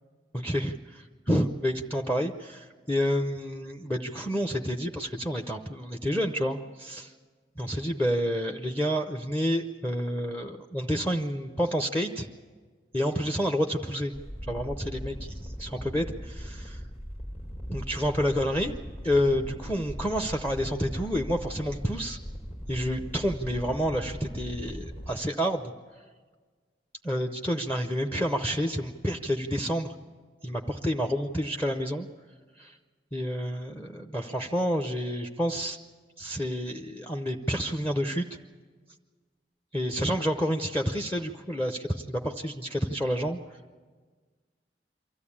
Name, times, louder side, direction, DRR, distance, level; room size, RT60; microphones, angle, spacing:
voice 1, 0.3-7.1 7.6-12.3 12.9-14.1 14.5-16.7 17.7-18.8 19.0-22.2 22.7-25.7 27.0-29.9 30.4-32.1 32.6-32.8 33.1-35.8 36.2-38.3 39.7-43.4, equal, 10° left, 5 dB, 0.7 m, -29 dB
sound 1, 14.1-25.1, equal, 35° left, 1.9 m, -39 dB
24.0 x 14.5 x 8.6 m, 1.5 s
head